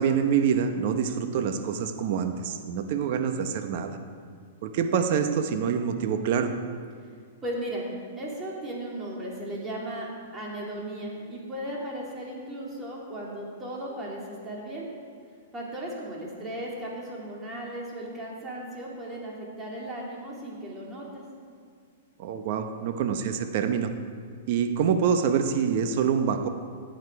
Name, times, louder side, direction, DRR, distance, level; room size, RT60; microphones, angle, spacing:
voice 1, 0.0-4.0 4.6-6.5 22.2-23.9 24.5-26.5, right 7 dB, 55° right, 7 dB, 1.1 m, -26 dB
voice 2, 7.4-7.9 8.2-10.1 10.3-14.9 15.5-21.2, right 1 dB, 15° right, -4 dB, 3.3 m, -36 dB
15.5 x 9.1 x 4.8 m, 2.1 s
hypercardioid pair, 130°, 0 cm